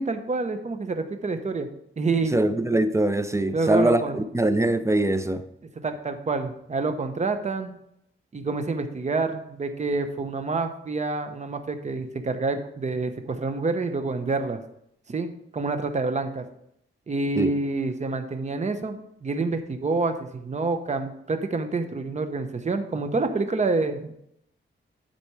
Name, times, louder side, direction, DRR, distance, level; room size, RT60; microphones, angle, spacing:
voice 1, 0.0-1.7 2.0-2.4 3.5-4.2 5.8-7.8 8.3-14.6 15.1-16.5 17.1-24.1, right 3 dB, 35° right, 7 dB, 0.9 m, -27 dB
voice 2, 2.3-5.4 17.4-17.5, right 1 dB, 15° right, 10 dB, 0.5 m, -22 dB
11.5 x 4.2 x 4.7 m, 0.75 s
wide cardioid pair, 115°, 21 cm